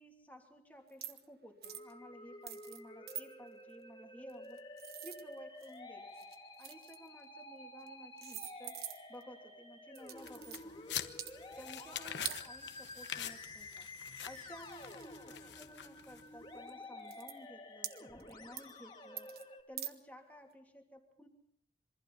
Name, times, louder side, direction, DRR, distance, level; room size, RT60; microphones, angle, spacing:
voice 1, 0.0-4.6 5.0-6.3 6.6-8.8 9.1-11.0 11.6-19.3 19.7-21.3, equal, 10° left, 2 dB, 2.8 m, -55 dB
sound 1, 0.9-1.2 1.6-1.9 2.5-2.8 3.1-3.2 4.3-5.8 6.1-7.1 7.8-7.9 8.2-9.2 9.9-10.6 11.1-11.3 12.2-12.4 13.9-14.0 14.3-15.5 16.2-16.3 16.7-16.8 17.0-17.3 17.8-18.3 18.6-18.8 19.2-19.4 19.8-19.9, right 11 dB, 60° right, 1.2 m, -44 dB
Musical instrument, 1.6-19.6, left 1 dB, 25° left, 2.1 m, -51 dB
sound 2, 10.2-16.4, left 10 dB, 85° left, 1.1 m, -45 dB
27.0 x 24.0 x 4.2 m, 0.65 s
head